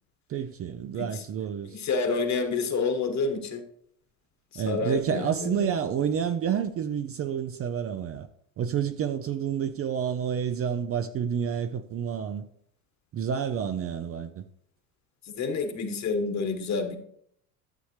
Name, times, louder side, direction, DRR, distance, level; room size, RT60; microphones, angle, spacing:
voice 1, 0.3-1.8 4.6-8.3 8.6-12.4 13.1-14.4, right 8 dB, 35° right, 0.6 m, -29 dB
voice 2, 1.7-3.6 4.5-5.7 15.2-17.0, left 4 dB, 40° left, 1.5 m, -29 dB
11.5 x 7.1 x 3.3 m
hypercardioid pair, 90°, 44 cm